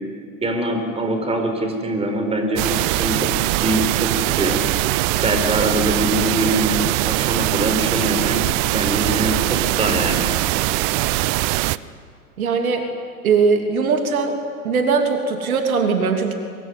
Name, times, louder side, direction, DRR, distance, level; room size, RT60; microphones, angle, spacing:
voice 1, 0.4-3.3 3.6-4.6 5.2-10.2, right 1 dB, 15° right, 5 dB, 4.5 m, -23 dB
sound 1, 2.6-11.8, right 18 dB, 30° right, 0.6 m, -21 dB
voice 2, 12.4-12.9 13.2-14.4 14.6-16.3, right 5 dB, 65° right, 5 dB, 3.1 m, -20 dB
23.5 x 23.0 x 9.6 m, 2.2 s
figure-of-eight pair, 95°, 45 cm